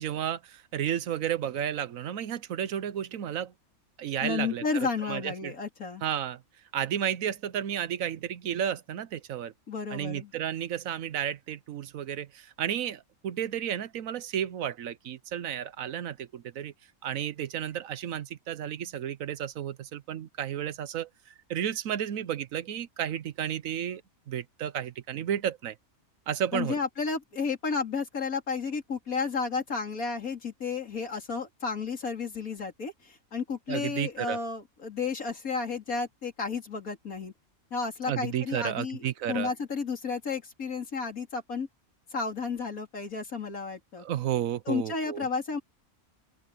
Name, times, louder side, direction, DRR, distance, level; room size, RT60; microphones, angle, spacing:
voice 1, 0.0-3.5 4.0-5.5 6.0-6.4 6.7-9.5 9.9-16.7 17.0-21.1 21.5-24.0 24.3-25.8 26.3-26.8 33.7-34.4 38.1-39.5 44.0-45.3, right 10 dB, 70° right, 1.1 m, -32 dB
voice 2, 4.2-6.0 9.7-10.3 26.5-37.3 37.7-41.7 42.1-44.1 44.7-45.6, left 5 dB, 70° left, 3.7 m, -32 dB
open air
omnidirectional pair, 1.5 m